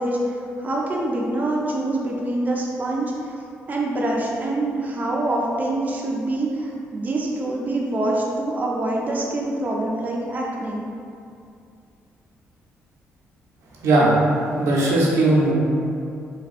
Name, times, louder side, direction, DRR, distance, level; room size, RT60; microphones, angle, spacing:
voice 1, 0.0-3.4 3.7-10.8, right 1 dB, 35° right, -3 dB, 0.4 m, -25 dB
voice 2, 13.8-14.1 14.6-15.5, right 2 dB, 80° right, -5 dB, 0.6 m, -18 dB
3.5 x 2.2 x 2.4 m, 2.4 s
cardioid pair, 75°, 5 cm